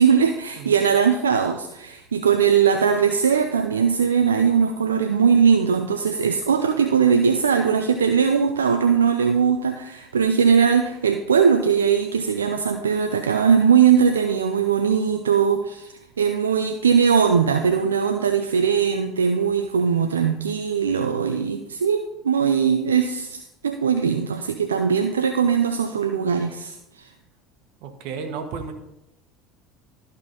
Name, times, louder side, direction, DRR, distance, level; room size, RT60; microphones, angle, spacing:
voice 1, 0.0-27.1, right 6 dB, 90° right, 6 dB, 0.5 m, -20 dB
voice 2, 0.6-0.9 27.8-28.7, right 5 dB, 65° right, 6 dB, 1.4 m, -33 dB
13.5 x 5.2 x 4.1 m, 0.88 s
hypercardioid pair, 70°, 0 cm